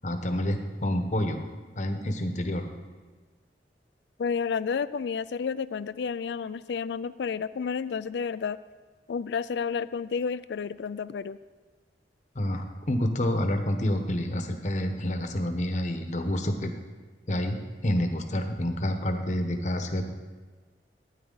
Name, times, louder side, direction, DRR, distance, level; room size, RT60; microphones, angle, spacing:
voice 1, 0.0-1.4 1.8-2.7 12.3-16.7 17.3-17.5 17.8-20.0, left 1 dB, 40° left, 6 dB, 1.0 m, -28 dB
voice 2, 4.2-8.6 9.1-11.4, left 6 dB, 75° left, 16 dB, 0.4 m, -31 dB
12.5 x 9.3 x 3.9 m, 1.4 s
head